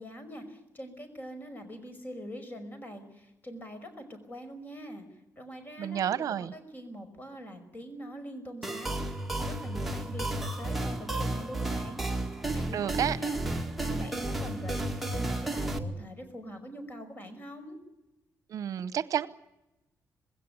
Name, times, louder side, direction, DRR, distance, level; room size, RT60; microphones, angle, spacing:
voice 1, 0.0-5.1 5.4-12.0 12.5-17.8, equal, 30° left, 8 dB, 5.3 m, -44 dB
voice 2, 5.8-6.5 12.7-13.2 18.5-19.3, right 9 dB, 65° right, 16 dB, 0.8 m, -30 dB
sound 1, 8.6-15.8, right 2 dB, 5° right, 2.1 m, -32 dB
20.5 x 17.0 x 9.5 m, 0.98 s
cardioid pair, 110°, 6 cm